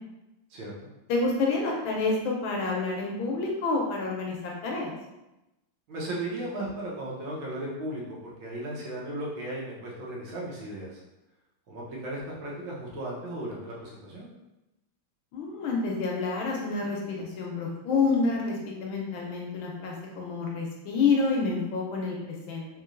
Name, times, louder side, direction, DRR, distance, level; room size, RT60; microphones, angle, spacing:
voice 1, 1.1-4.9 15.3-22.7, left 4 dB, 75° left, -1 dB, 1.3 m, -28 dB
voice 2, 5.9-11.0 11.7-14.3, right 1 dB, 70° right, -4 dB, 1.6 m, -36 dB
3.7 x 3.0 x 2.4 m, 0.97 s
omnidirectional pair, 2.4 m